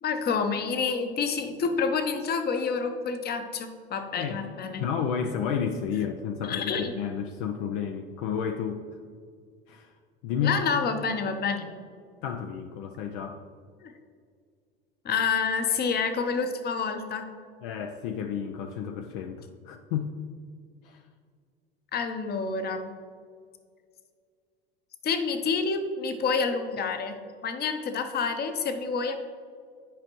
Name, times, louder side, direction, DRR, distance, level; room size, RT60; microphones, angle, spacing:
voice 1, 0.0-4.8 6.4-6.9 10.4-11.7 13.8-13.9 15.0-17.3 21.9-22.9 25.0-29.2, left 5 dB, 35° left, 7 dB, 0.9 m, -28 dB
voice 2, 4.8-8.8 9.7-9.9 10.2-10.6 12.2-13.4 17.6-20.1 20.8-21.0, left 7 dB, 60° left, 5 dB, 0.6 m, -31 dB
10.0 x 5.2 x 3.0 m, 2.1 s
hypercardioid pair, 80°, 29 cm